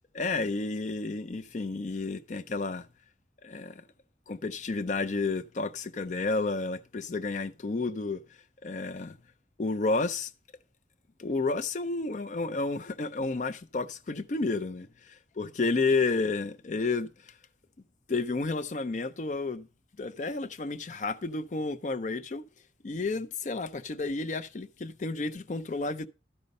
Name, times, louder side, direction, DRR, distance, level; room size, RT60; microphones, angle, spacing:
voice 1, 0.1-2.9 3.4-3.8 4.3-8.2 8.6-9.2 9.6-10.3 11.2-17.3 18.1-19.7 20.0-22.4 22.8-26.1, left 3 dB, 40° left, 0.4 m, -31 dB
12.0 x 5.3 x 5.2 m
head